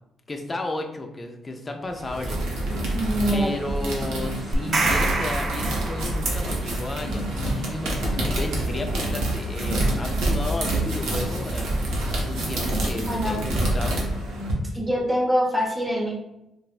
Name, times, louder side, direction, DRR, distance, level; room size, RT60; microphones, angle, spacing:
voice 1, 0.3-2.8 3.3-11.8 12.1-14.0, left 2 dB, 25° left, 4 dB, 0.4 m, -33 dB
sound 1, 1.9-14.5, right 1 dB, 90° right, 0.7 m, -27 dB
voice 2, 2.9-3.7 13.0-13.4 14.7-16.1, equal, 15° right, -2 dB, 0.7 m, -24 dB
sound 2, 4.5-6.5, right 3 dB, 45° right, 0.4 m, -26 dB
3.3 x 2.0 x 2.4 m, 0.89 s
cardioid pair, 90°, 0 cm